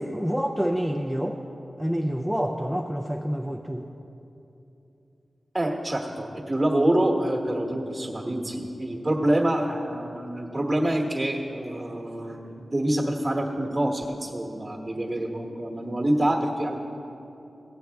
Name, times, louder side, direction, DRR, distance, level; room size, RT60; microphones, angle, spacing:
voice 1, 0.0-1.4 1.8-3.9, equal, ahead, 1 dB, 0.4 m, -28 dB
voice 2, 5.5-16.8, right 1 dB, 25° right, 0 dB, 1.2 m, -26 dB
16.0 x 8.5 x 3.5 m, 2.9 s
wide cardioid pair, 105°, 0 cm